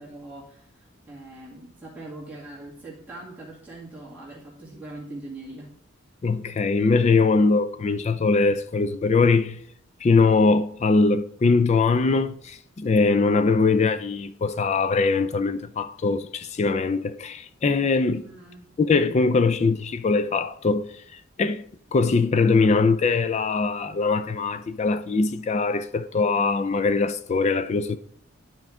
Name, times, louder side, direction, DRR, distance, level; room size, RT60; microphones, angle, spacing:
voice 1, 0.0-5.7 18.2-18.7, right 2 dB, 5° right, 2.0 m, -42 dB
voice 2, 6.2-9.6 10.0-18.3 18.8-21.6 21.9-28.0, left 4 dB, 35° left, 0.3 m, -22 dB
11.5 x 4.6 x 3.6 m
head